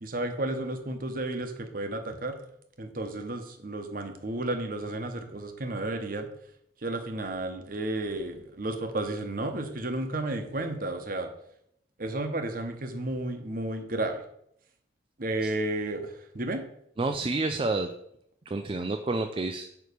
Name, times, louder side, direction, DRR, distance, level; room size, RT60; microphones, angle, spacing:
voice 1, 0.0-2.4 2.8-6.3 6.8-11.3 12.0-14.2 15.2-16.6, right 2 dB, 45° right, 6 dB, 1.0 m, -32 dB
voice 2, 17.0-17.9 18.5-19.6, right 3 dB, 25° right, 5 dB, 0.4 m, -29 dB
9.2 x 3.2 x 6.7 m, 0.73 s
head